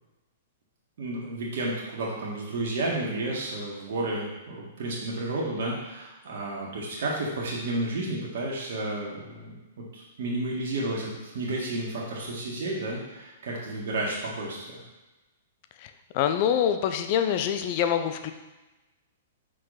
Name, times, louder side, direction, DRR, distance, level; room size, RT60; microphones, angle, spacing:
voice 1, 1.0-9.6 9.9-14.8, right 2 dB, 65° right, -4 dB, 1.7 m, -31 dB
voice 2, 16.1-18.3, left 9 dB, 50° left, 8 dB, 0.6 m, -25 dB
5.8 x 5.1 x 4.1 m, 1.1 s
hypercardioid pair, 120°, 0 cm